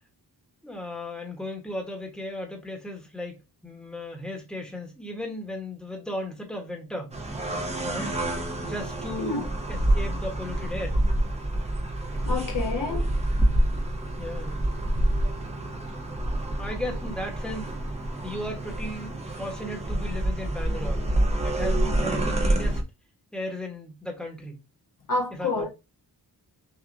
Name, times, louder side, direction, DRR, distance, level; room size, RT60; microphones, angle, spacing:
voice 1, 0.6-7.1 7.8-8.1 8.6-11.0 14.2-14.7 16.6-17.7 18.2-21.1 21.4-22.8 23.3-24.6 25.3-25.7, left 1 dB, ahead, 1.1 m, -36 dB
sound 1, 7.1-22.8, right 1 dB, 15° right, 0.5 m, -27 dB
voice 2, 12.2-13.1 25.1-25.7, left 3 dB, 50° left, 0.7 m, -28 dB
6.1 x 2.5 x 2.6 m
wide cardioid pair, 175°, 41 cm